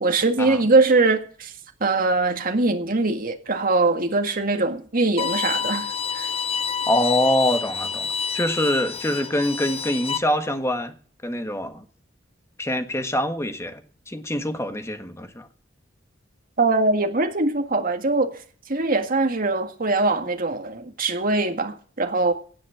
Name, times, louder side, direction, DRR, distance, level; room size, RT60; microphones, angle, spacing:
voice 1, 0.0-1.5 1.8-5.9 6.1-6.3 16.6-18.3 18.7-22.3, right 3 dB, 50° right, 1.9 m, -22 dB
Bowed string instrument, 5.2-10.2, left 6 dB, 30° left, 0.5 m, -28 dB
voice 2, 6.9-8.1 8.3-10.9 11.2-11.8 12.6-15.5, left 1 dB, 15° left, 1.4 m, -24 dB
17.0 x 6.2 x 7.1 m
head